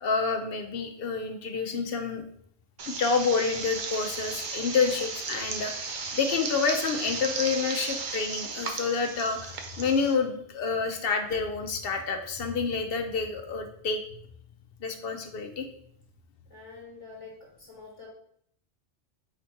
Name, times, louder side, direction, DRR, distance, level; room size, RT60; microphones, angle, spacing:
voice 1, 0.0-2.2 2.9-14.0 14.8-15.6, left 5 dB, 65° left, 5 dB, 0.7 m, -28 dB
sound 1, 2.8-10.1, right 4 dB, 55° right, 0.7 m, -35 dB
voice 2, 16.5-17.3 17.6-18.1, left 4 dB, 30° left, -4 dB, 1.5 m, -46 dB
4.1 x 2.8 x 4.4 m, 0.67 s
omnidirectional pair, 1.2 m